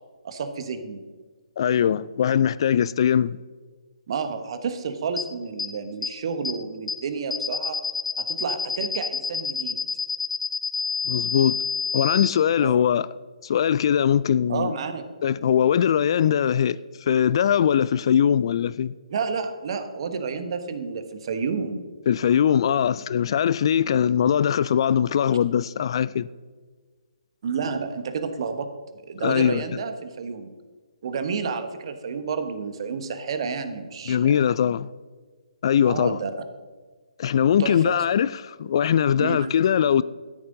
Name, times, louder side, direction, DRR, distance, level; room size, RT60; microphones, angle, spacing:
voice 1, 0.2-1.0 4.1-7.8 8.2-9.8 12.6-12.8 14.5-15.1 19.1-21.8 27.4-30.5 31.0-34.4 35.8-36.4 37.6-37.9 39.2-39.5, right 5 dB, 50° right, 1.2 m, -30 dB
voice 2, 1.6-3.4 11.1-11.6 11.9-13.1 13.4-14.7 15.2-18.9 22.1-26.3 29.2-29.6 34.1-34.9 35.6-36.2 37.2-40.0, left 8 dB, 45° left, 0.3 m, -21 dB
sound 1, 5.2-5.3 5.6-5.7 6.0-6.1 6.4-6.5 6.9-7.0 7.3-12.3, left 5 dB, 80° left, 1.3 m, -27 dB
13.0 x 10.5 x 3.9 m
figure-of-eight pair, 140°, 4 cm